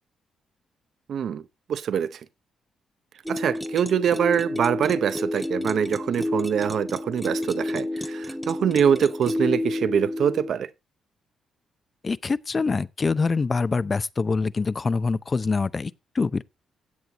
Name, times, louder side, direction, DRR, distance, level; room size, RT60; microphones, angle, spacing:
voice 1, 1.1-1.4 1.7-2.2 3.3-10.7, right 8 dB, 65° right, 0.7 m, -24 dB
sound 1, 3.3-10.5, left 1 dB, ahead, 0.8 m, -30 dB
voice 2, 12.0-16.4, left 4 dB, 35° left, 0.6 m, -25 dB
16.0 x 8.0 x 2.9 m
cardioid pair, 80°, 0 cm